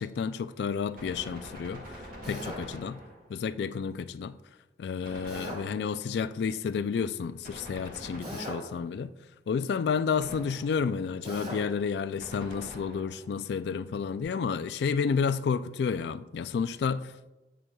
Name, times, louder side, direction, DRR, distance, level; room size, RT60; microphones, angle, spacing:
voice 1, 0.0-3.0 3.3-4.4 4.8-9.1 9.5-17.3, left 6 dB, 70° left, 0.3 m, -31 dB
Gunshot gunfire, 1.0-3.5 5.0-6.1 7.4-8.9 10.2-11.0 12.2-13.3, equal, 55° right, 1.3 m, -45 dB
Drill, 2.2-2.6 5.3-5.6 8.2-8.7 11.2-11.6, equal, 35° right, 2.3 m, -38 dB
8.8 x 7.9 x 2.3 m
head